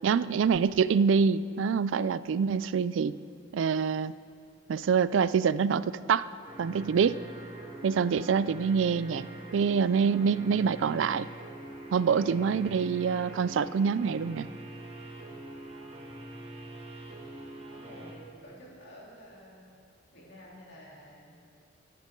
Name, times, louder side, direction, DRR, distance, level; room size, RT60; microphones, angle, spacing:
voice 1, 0.0-3.2 3.5-4.1 4.7-6.3 6.6-7.2 7.8-9.3 9.5-11.3 11.9-14.5, right 6 dB, 80° right, 17 dB, 0.3 m, -26 dB
sound 1, 6.4-18.1, right 1 dB, 30° right, 1.4 m, -44 dB
voice 2, 17.7-19.7 20.1-21.4, equal, 60° left, -5 dB, 3.2 m, -50 dB
22.0 x 9.1 x 3.7 m, 2.4 s
head